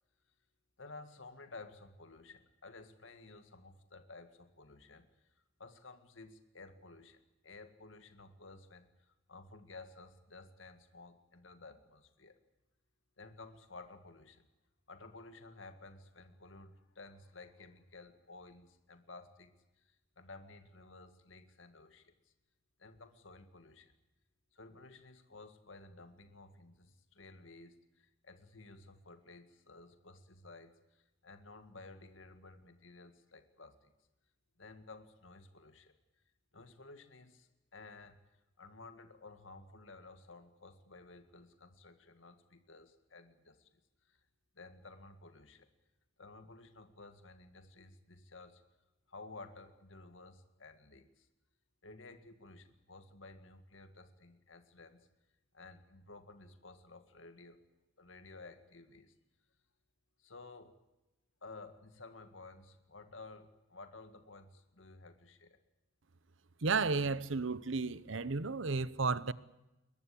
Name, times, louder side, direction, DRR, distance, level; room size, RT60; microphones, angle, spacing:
voice 1, 0.8-12.4 13.2-14.5 14.9-22.3 22.8-23.9 24.5-33.9 34.6-35.9 36.5-43.7 44.0-44.2 44.6-45.7 46.2-48.6 49.1-51.3 51.8-55.1 55.5-57.6 58.0-59.1 60.2-60.8 61.4-65.6, left 3 dB, 75° left, 2.0 m, -54 dB
voice 2, 66.6-69.3, right 4 dB, 70° right, 1.0 m, -33 dB
21.5 x 21.0 x 8.7 m
head